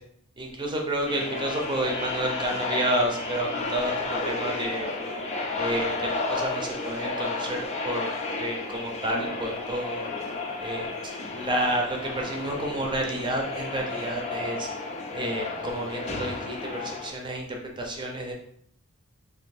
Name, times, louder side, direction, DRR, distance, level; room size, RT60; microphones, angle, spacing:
voice 1, 0.4-5.1 5.5-8.1 8.4-10.1 10.6-10.9 11.3-14.7 15.1-17.5 17.8-18.3, right 1 dB, 20° right, 1 dB, 0.6 m, -30 dB
sound 1, 1.1-17.1, left 3 dB, 30° left, 0.4 m, -32 dB
3.2 x 2.6 x 4.1 m, 0.67 s
head